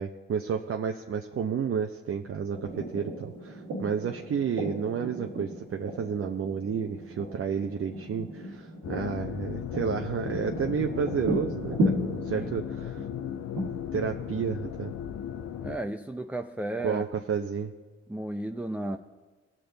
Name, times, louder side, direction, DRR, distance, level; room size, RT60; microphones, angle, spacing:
voice 1, 0.0-13.0 13.5-14.9 16.8-17.7, right 7 dB, 45° right, 4 dB, 0.7 m, -31 dB
sound 1, 2.5-15.6, right 1 dB, 80° right, 1.6 m, -35 dB
sound 2, 8.8-15.8, left 9 dB, 65° left, 0.7 m, -36 dB
voice 2, 15.6-17.0 18.1-19.0, right 1 dB, 5° right, 6 dB, 0.5 m, -33 dB
18.0 x 6.8 x 3.9 m, 1.3 s
hypercardioid pair, 50°, 29 cm